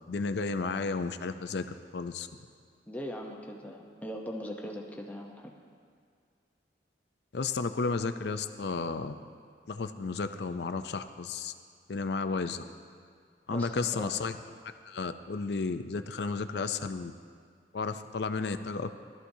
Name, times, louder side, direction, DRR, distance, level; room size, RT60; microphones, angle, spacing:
voice 1, 0.1-2.3 7.3-9.2 9.7-11.5 11.9-12.6 13.5-14.4 14.9-17.1 17.7-18.9, left 4 dB, 65° left, 9 dB, 0.5 m, -33 dB
voice 2, 2.9-5.5 13.5-14.1, equal, 10° left, 0 dB, 0.8 m, -40 dB
17.5 x 13.0 x 2.7 m, 2.1 s
head